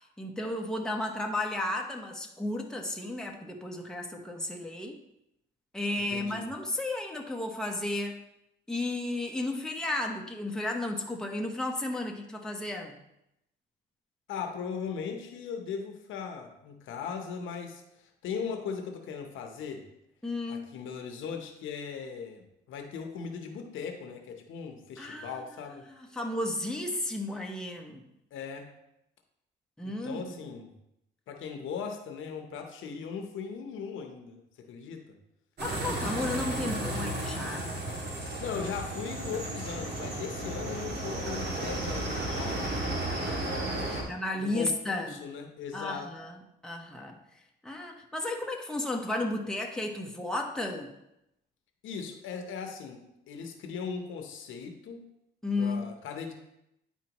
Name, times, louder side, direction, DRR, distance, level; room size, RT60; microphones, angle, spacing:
voice 1, 0.2-5.0 5.7-8.2 8.7-13.0 20.2-20.7 25.0-25.4 26.0-28.1 29.8-30.2 35.6-37.7 43.1-45.2 45.7-46.3 46.6-47.2 47.6-50.9 55.4-55.9, left 2 dB, 5° left, 0 dB, 1.0 m, -33 dB
voice 2, 6.1-6.5 14.3-19.8 20.5-25.9 28.3-28.7 29.8-30.7 31.3-35.2 38.4-42.8 43.7-46.1 51.8-55.0 55.6-56.3, left 6 dB, 80° left, 4 dB, 1.0 m, -39 dB
sound 1, 35.6-44.0, right 1 dB, 55° right, 2.0 m, -33 dB
10.0 x 4.4 x 3.0 m, 0.82 s
cardioid pair, 90°, 20 cm